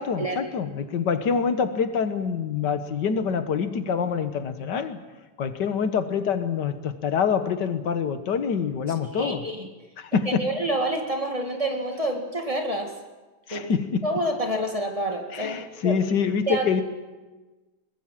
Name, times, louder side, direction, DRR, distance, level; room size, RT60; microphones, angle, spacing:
voice 1, 0.0-5.0 5.4-9.5 10.0-10.5 13.5-14.1 15.3-16.8, left 6 dB, 85° left, 10 dB, 1.9 m, -26 dB
voice 2, 9.1-9.7 10.3-12.9 13.5-13.7 14.0-15.6 15.8-16.0 16.5-16.7, right 1 dB, 20° right, 3 dB, 2.2 m, -27 dB
23.0 x 20.5 x 7.5 m, 1.2 s
omnidirectional pair, 1.8 m